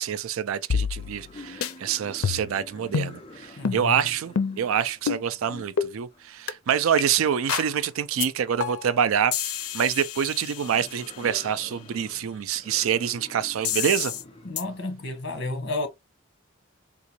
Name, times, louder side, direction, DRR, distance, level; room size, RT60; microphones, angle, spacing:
voice 1, 0.0-9.3 9.7-14.1, right 8 dB, 75° right, 0.4 m, -26 dB
sound 1, 0.7-1.3 1.6-1.7 2.2-2.6 2.9-3.1 3.7-3.8 4.4-4.7 5.1-5.2 5.8-5.9 6.5-6.6 7.0-7.1 7.5-7.7 8.2-8.3 8.6-8.9 9.3-11.2 13.7-14.2 14.6-14.7, left 7 dB, 90° left, 0.5 m, -28 dB
sound 2, 0.9-8.6 9.0-14.5 15.0-15.2, left 2 dB, 25° left, 0.4 m, -48 dB
voice 2, 3.6-4.1 14.4-15.9, left 2 dB, 55° left, 1.1 m, -31 dB
3.7 x 2.5 x 2.9 m
head